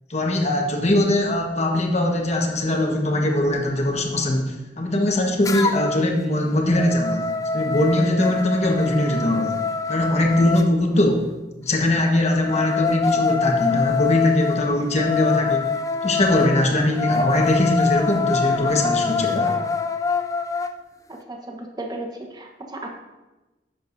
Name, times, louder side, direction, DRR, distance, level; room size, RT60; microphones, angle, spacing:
voice 1, 0.1-7.2 7.5-9.6 9.9-11.3 11.6-15.7 16.0-19.6, left 1 dB, 40° left, 1 dB, 1.3 m, -21 dB
sound 1, 5.4-6.1 6.5-10.7 12.1-20.7, left 5 dB, 20° left, 0.3 m, -25 dB
voice 2, 21.1-22.9, right 2 dB, 25° right, 2 dB, 1.0 m, -35 dB
10.5 x 7.6 x 2.6 m, 1.1 s
head